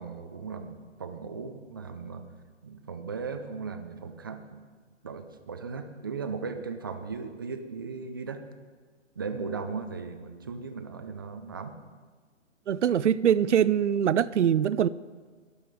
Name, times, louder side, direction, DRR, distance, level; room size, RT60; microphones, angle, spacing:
voice 1, 0.0-2.3 2.6-4.6 5.0-8.5 9.2-11.8, right 5 dB, 20° right, 0.4 m, -37 dB
voice 2, 12.7-14.9, right 9 dB, 70° right, 0.6 m, -23 dB
13.0 x 11.5 x 4.8 m
figure-of-eight pair, 140°, 37 cm